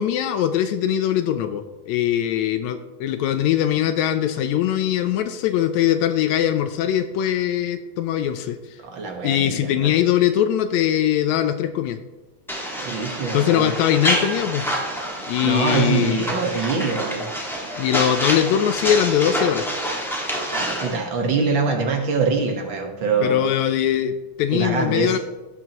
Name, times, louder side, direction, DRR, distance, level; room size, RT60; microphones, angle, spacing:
voice 1, 0.0-8.6 9.2-12.0 13.3-14.7 15.3-16.2 17.8-19.7 23.2-25.2, left 10 dB, 80° left, 9 dB, 1.7 m, -21 dB
voice 2, 8.8-10.0 12.8-13.7 15.4-17.3 20.5-23.4 24.5-25.2, right 4 dB, 55° right, 2 dB, 1.4 m, -24 dB
sound 1, 12.5-21.0, equal, ahead, 0.5 m, -27 dB
16.5 x 6.3 x 3.0 m, 1.2 s
omnidirectional pair, 3.6 m